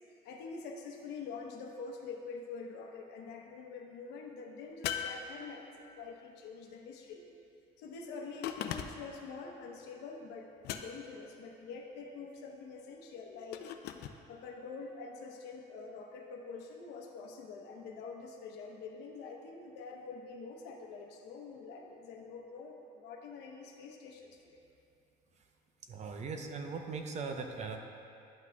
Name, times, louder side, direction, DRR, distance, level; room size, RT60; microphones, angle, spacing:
voice 1, 0.1-7.2 7.8-13.7 14.3-24.6, left 4 dB, 85° left, 1 dB, 0.9 m, -46 dB
sound 1, 4.8-5.9 8.4-9.2 10.6-11.3 13.5-14.2, left 9 dB, 70° left, 0.4 m, -39 dB
voice 2, 25.9-27.8, right 4 dB, 45° right, 4 dB, 0.7 m, -39 dB
11.0 x 5.9 x 2.3 m, 2.6 s
cardioid pair, 110°, 17 cm